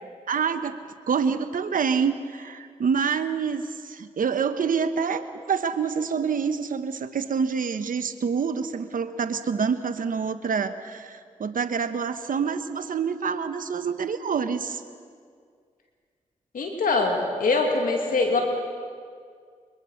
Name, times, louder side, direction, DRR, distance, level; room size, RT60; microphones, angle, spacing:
voice 1, 0.3-0.8 1.1-14.8, right 6 dB, 75° right, 10 dB, 1.1 m, -27 dB
voice 2, 16.5-18.4, left 3 dB, 80° left, 2 dB, 2.4 m, -23 dB
23.5 x 22.0 x 6.5 m, 2.1 s
cardioid pair, 40°, 14 cm